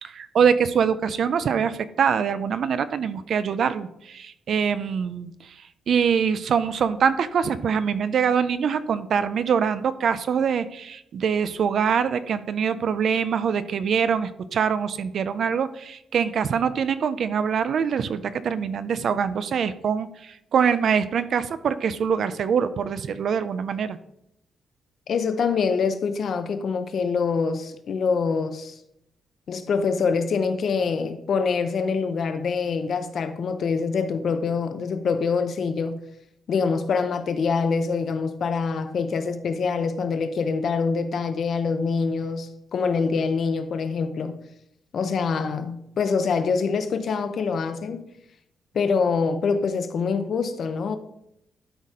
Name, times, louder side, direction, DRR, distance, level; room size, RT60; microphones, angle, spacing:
voice 1, 0.0-5.5 5.9-24.0, right 7 dB, 50° right, 0.5 m, -24 dB
voice 2, 25.1-28.8 29.5-36.0 36.5-44.4 44.9-48.1 48.7-51.0, left 5 dB, 50° left, 0.8 m, -25 dB
12.5 x 4.1 x 4.9 m
wide cardioid pair, 180°, 0 cm